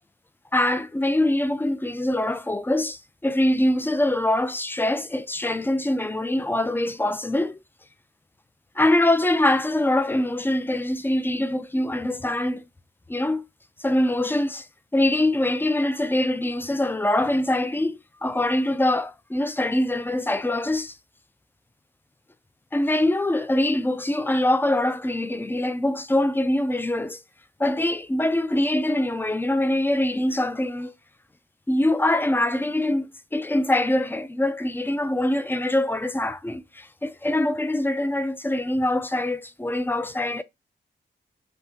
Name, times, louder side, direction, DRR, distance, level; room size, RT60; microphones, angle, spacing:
voice 1, 0.5-7.6 8.8-12.6 13.1-13.4 13.8-14.7 14.9-20.9 22.7-27.2 27.6-30.9 31.7-40.4, left 1 dB, 10° left, 0.4 m, -23 dB
2.8 x 2.4 x 3.5 m
cardioid pair, 55°, 19 cm